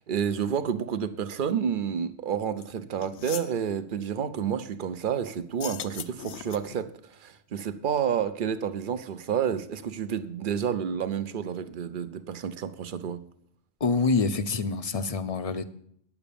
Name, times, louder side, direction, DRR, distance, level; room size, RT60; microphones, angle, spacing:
voice 1, 0.0-6.9 7.2-13.2, right 8 dB, 50° right, 0.7 m, -30 dB
sound 1, 2.6-2.7 3.0-3.6 5.5-6.8, left 10 dB, 70° left, 0.8 m, -39 dB
voice 2, 13.8-15.6, left 4 dB, 40° left, 0.6 m, -26 dB
10.0 x 7.1 x 6.9 m
omnidirectional pair, 1.3 m